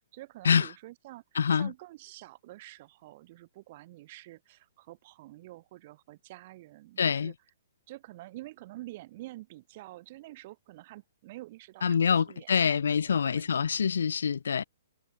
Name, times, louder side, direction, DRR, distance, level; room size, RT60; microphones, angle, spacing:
voice 1, 0.1-7.3 7.9-13.5, right 17 dB, 30° right, 3.9 m, -48 dB
voice 2, 1.3-1.7 7.0-7.3 11.8-14.6, left 6 dB, 85° left, 1.7 m, -25 dB
hypercardioid pair, 175°, 0 cm